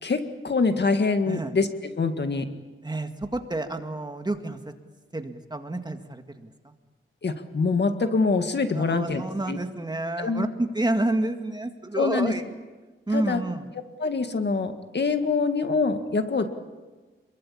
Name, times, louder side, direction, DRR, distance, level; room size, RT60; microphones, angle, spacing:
voice 1, 0.0-2.5 7.2-9.6 10.2-10.4 11.9-12.3 13.1-13.4 14.0-16.5, left 4 dB, 55° left, 7 dB, 1.9 m, -25 dB
voice 2, 2.8-4.7 5.1-6.7 8.7-12.4 13.1-13.7, right 2 dB, 20° right, 6 dB, 2.0 m, -29 dB
29.0 x 22.5 x 8.6 m, 1.3 s
wide cardioid pair, 125°, 21 cm